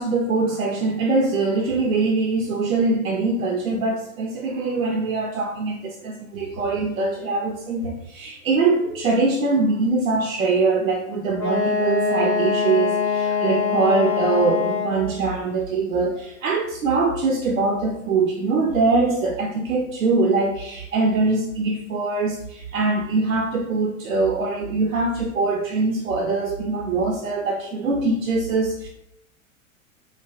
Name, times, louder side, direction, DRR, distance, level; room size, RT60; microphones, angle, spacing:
voice 1, 0.0-28.9, right 3 dB, 80° right, 1 dB, 0.5 m, -23 dB
Wind instrument woodwind instrument, 11.4-15.1, left 5 dB, 5° left, 0.4 m, -23 dB
3.2 x 2.5 x 2.3 m, 0.77 s
figure-of-eight pair, 90°, 40 cm